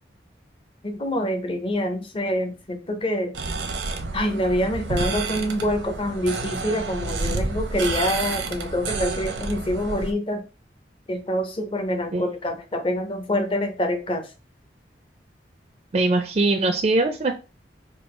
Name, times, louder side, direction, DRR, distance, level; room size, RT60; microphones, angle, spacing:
voice 1, 0.8-3.4 4.1-10.4 11.1-14.3, left 1 dB, 30° left, 0.6 m, -26 dB
sound 1, 3.3-10.1, right 3 dB, 90° right, 0.7 m, -29 dB
voice 2, 15.9-17.3, right 2 dB, 40° right, 0.4 m, -21 dB
4.5 x 2.3 x 3.1 m
head